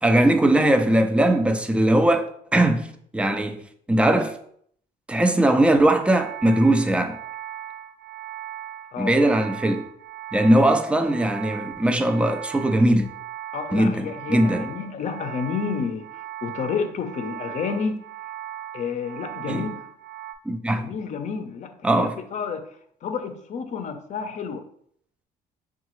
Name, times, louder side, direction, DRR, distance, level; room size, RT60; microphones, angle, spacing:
voice 1, 0.0-3.6 3.9-4.4 5.1-7.2 9.0-9.8 10.3-13.1 13.7-14.6 19.5-19.6 20.5-20.9 21.8-22.1, right 1 dB, 5° right, 0.3 m, -20 dB
sound 1, 6.0-20.3, right 12 dB, 75° right, 0.5 m, -38 dB
voice 2, 13.5-18.0 18.7-19.9 20.7-24.6, left 6 dB, 45° left, 0.6 m, -30 dB
5.6 x 2.3 x 3.0 m
cardioid pair, 110°, 17 cm